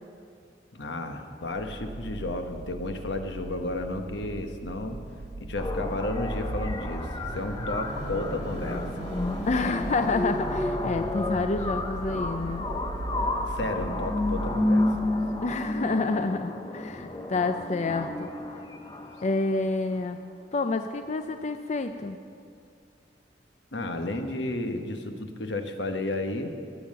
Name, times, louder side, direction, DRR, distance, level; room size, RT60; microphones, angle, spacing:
voice 1, 0.7-5.0 5.4-7.1 7.3-8.8 13.4-14.9 23.7-26.5, left 2 dB, 80° left, 6 dB, 1.1 m, -32 dB
sound 1, 1.4-16.2, right 2 dB, 45° right, 0.4 m, -42 dB
sound 2, 5.6-19.6, left 1 dB, 25° left, 0.8 m, -31 dB
Car / Idling / Accelerating revving vroom, 5.6-15.0, equal, 70° right, 2.7 m, -38 dB
voice 2, 9.5-12.7 15.4-18.3 19.2-20.2 20.5-22.2, left 3 dB, 40° left, 8 dB, 0.5 m, -28 dB
16.0 x 7.1 x 7.5 m, 2.3 s
head